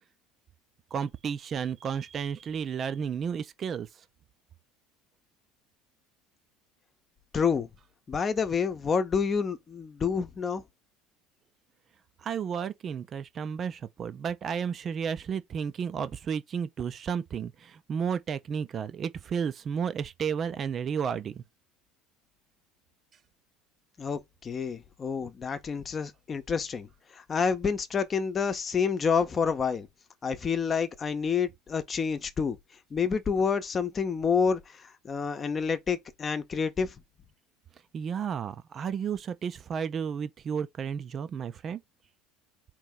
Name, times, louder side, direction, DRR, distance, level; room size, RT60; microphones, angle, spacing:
voice 1, 0.9-3.9 12.2-21.4 37.9-41.8, right 7 dB, 35° right, 0.5 m, -32 dB
voice 2, 7.3-7.7 8.1-10.6 24.0-26.9 27.1-29.9 30.2-32.6 32.9-36.9, left 6 dB, 30° left, 0.9 m, -28 dB
4.5 x 3.0 x 3.8 m
figure-of-eight pair, 65°, 0 cm